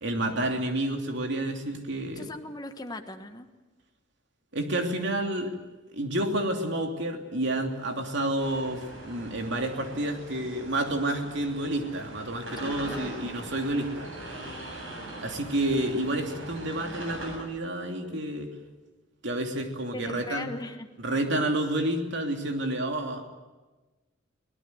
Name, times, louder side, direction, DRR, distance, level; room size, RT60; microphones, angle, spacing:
voice 1, 0.0-2.3 4.5-5.5 5.9-14.1 15.1-18.5 19.2-20.5 21.0-23.3, right 1 dB, 65° right, 4 dB, 3.0 m, -29 dB
voice 2, 2.1-3.5 12.6-13.3 19.9-20.9, left 1 dB, 20° left, 6 dB, 1.5 m, -39 dB
sound 1, 8.4-17.4, right 1 dB, 80° right, 7.6 m, -41 dB
23.5 x 18.0 x 9.6 m, 1.2 s
head